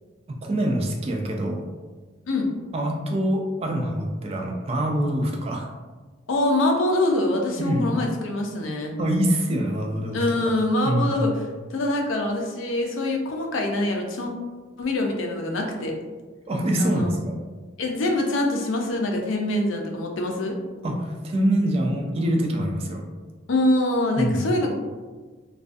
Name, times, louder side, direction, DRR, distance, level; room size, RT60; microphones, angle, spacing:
voice 1, 0.3-1.6 2.7-5.6 7.6-7.9 9.0-10.2 10.8-11.2 16.5-17.3 20.8-23.0 24.2-24.4, right 1 dB, 30° right, 1 dB, 0.3 m, -25 dB
voice 2, 6.3-8.9 10.1-11.4 11.7-14.3 14.8-16.0 16.8-17.1 17.8-20.6 23.5-24.7, left 1 dB, 90° left, 2 dB, 0.5 m, -24 dB
2.4 x 2.3 x 2.4 m, 1.3 s
head